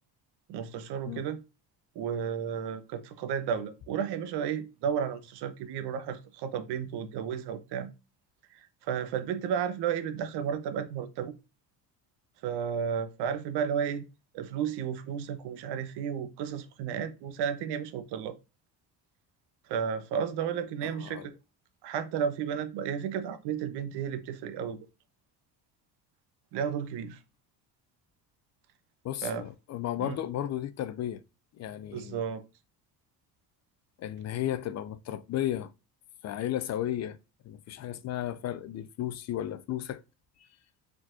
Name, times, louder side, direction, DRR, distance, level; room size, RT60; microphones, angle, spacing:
voice 1, 0.5-1.4 1.9-7.9 8.5-11.3 12.4-14.0 14.3-18.4 19.7-21.3 21.8-24.8 26.5-27.2 29.2-29.5 30.0-30.2 31.9-32.4, right 8 dB, 75° right, 0.9 m, -33 dB
voice 2, 20.8-21.3 29.0-31.2 31.6-32.2 34.0-35.7 36.2-37.2 37.5-40.0, left 12 dB, 45° left, 0.4 m, -34 dB
4.8 x 3.9 x 2.5 m
cardioid pair, 145°, 40 cm